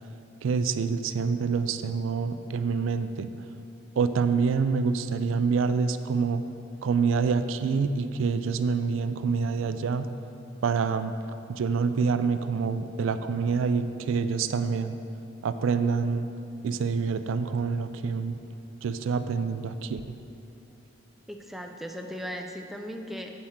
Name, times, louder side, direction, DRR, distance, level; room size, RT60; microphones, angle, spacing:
voice 1, 0.4-3.3 4.0-6.4 6.8-10.1 10.6-11.1 11.5-15.0 15.4-16.3 16.6-18.4 18.8-20.0, right 5 dB, 75° right, 11 dB, 0.4 m, -26 dB
voice 2, 21.3-23.3, equal, ahead, 2 dB, 0.4 m, -37 dB
8.6 x 7.8 x 3.7 m, 2.8 s
head